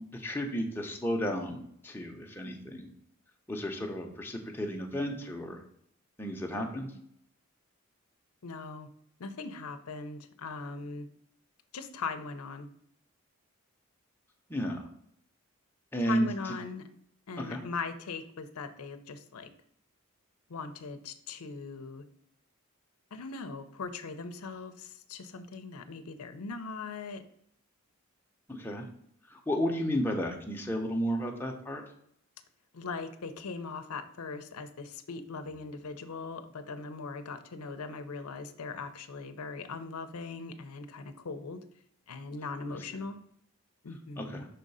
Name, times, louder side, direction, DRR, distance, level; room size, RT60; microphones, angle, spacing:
voice 1, 0.0-2.9 3.5-5.6 6.2-6.9 14.5-14.9 15.9-16.6 17.4-17.6 28.5-28.9 29.3-31.8 44.2-44.5, equal, 10° left, 0 dB, 0.7 m, -33 dB
voice 2, 8.4-8.9 9.2-11.1 11.7-12.7 16.0-16.9 17.3-19.5 20.5-22.0 23.1-27.2 32.7-41.6 42.1-43.2 43.8-44.4, left 4 dB, 85° left, 9 dB, 0.6 m, -40 dB
5.6 x 3.7 x 5.4 m, 0.69 s
head